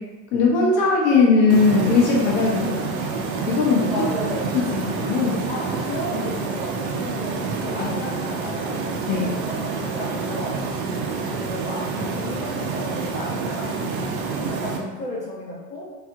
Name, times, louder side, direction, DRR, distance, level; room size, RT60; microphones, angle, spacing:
voice 1, 0.3-2.7 3.5-3.9 4.5-5.4 7.8-7.9 9.1-9.3, left 4 dB, 45° left, -3 dB, 0.8 m, -19 dB
sound 1, 1.5-14.8, right 4 dB, 55° right, 0.6 m, -28 dB
voice 2, 2.5-2.8 3.9-4.5 5.5-8.8 9.1-10.6 11.3-14.1 14.5-15.9, left 1 dB, 15° left, -6 dB, 1.0 m, -33 dB
3.3 x 2.6 x 2.3 m, 1.2 s
figure-of-eight pair, 75°, 49 cm